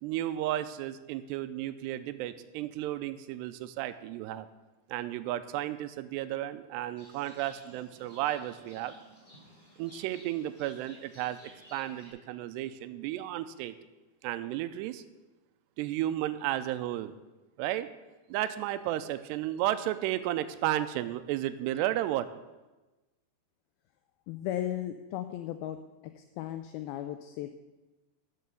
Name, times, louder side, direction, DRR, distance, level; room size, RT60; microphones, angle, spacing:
voice 1, 0.0-4.5 4.9-9.0 9.8-13.8 14.2-15.0 15.8-17.1 17.6-17.9 18.3-22.3, right 13 dB, 85° right, 12 dB, 2.6 m, -33 dB
Livestock farm animals working animals, 7.0-12.1, equal, 10° left, 4.3 m, -55 dB
voice 2, 24.3-25.8 26.2-27.5, left 12 dB, 90° left, 8 dB, 2.1 m, -36 dB
12.5 x 6.5 x 6.8 m, 1.1 s
omnidirectional pair, 4.9 m